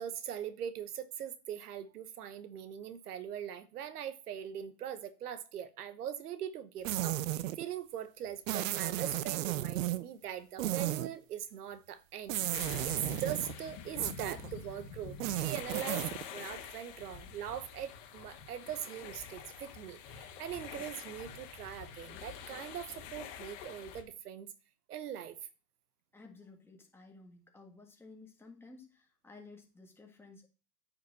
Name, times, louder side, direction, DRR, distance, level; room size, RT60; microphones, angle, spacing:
voice 1, 0.0-24.5 24.9-25.4, right 9 dB, 75° right, 1.1 m, -41 dB
sound 1, 6.8-7.6 8.5-10.0 10.6-11.1 12.3-13.5 14.0-14.5 15.1-16.2, right 14 dB, 55° right, 0.8 m, -34 dB
sound 2, 12.5-24.0, left 7 dB, 45° left, 2.2 m, -46 dB
voice 2, 26.1-30.5, left 3 dB, 5° left, 1.7 m, -54 dB
9.3 x 5.9 x 4.2 m
hypercardioid pair, 135°, 46 cm